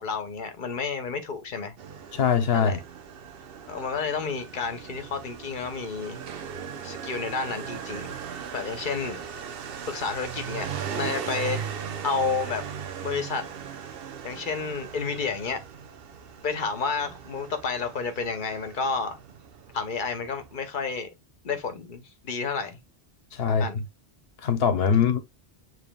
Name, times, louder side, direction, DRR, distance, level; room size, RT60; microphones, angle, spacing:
voice 1, 0.0-1.7 2.5-2.8 3.7-6.2 6.8-8.2 8.5-9.2 9.9-10.7 10.9-11.6 12.0-12.7 13.0-13.5 14.2-15.6 16.4-19.2 19.7-21.1 21.4-22.8 23.5-23.8, left 5 dB, 55° left, 1.0 m, -30 dB
Motorcycle, 1.8-20.6, right 7 dB, 70° right, 0.9 m, -38 dB
voice 2, 2.1-2.8 23.3-23.7 24.4-25.2, left 7 dB, 75° left, 1.0 m, -22 dB
6.9 x 3.3 x 2.2 m
omnidirectional pair, 1.0 m